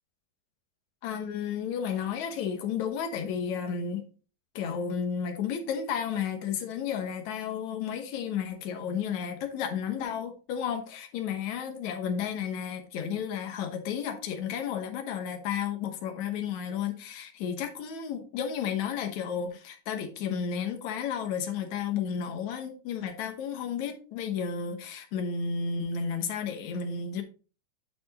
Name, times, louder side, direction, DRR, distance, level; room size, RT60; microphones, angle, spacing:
voice 1, 1.0-4.1 4.6-27.2, left 7 dB, 65° left, 2.3 m, -32 dB
9.8 x 4.3 x 4.1 m
omnidirectional pair, 3.7 m